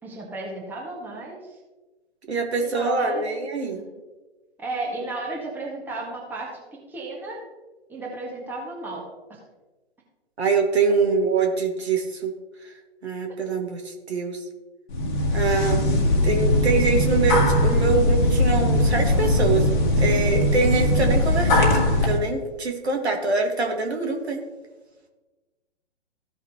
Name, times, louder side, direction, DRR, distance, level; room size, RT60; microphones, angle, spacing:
voice 1, 0.0-1.6 2.6-3.2 3.7-3.8 4.6-6.6 6.9-7.4 7.9-9.0 9.3-9.4 10.9-11.1, right 2 dB, 5° right, -3 dB, 1.6 m, -33 dB
voice 2, 2.3-3.8 10.4-12.3 13.0-14.4 15.3-24.4, right 4 dB, 70° right, 2 dB, 1.7 m, -24 dB
sound 1, 14.9-22.2, left 1 dB, 45° left, 1.7 m, -20 dB
15.0 x 5.8 x 2.9 m, 1.2 s
figure-of-eight pair, 125°, 34 cm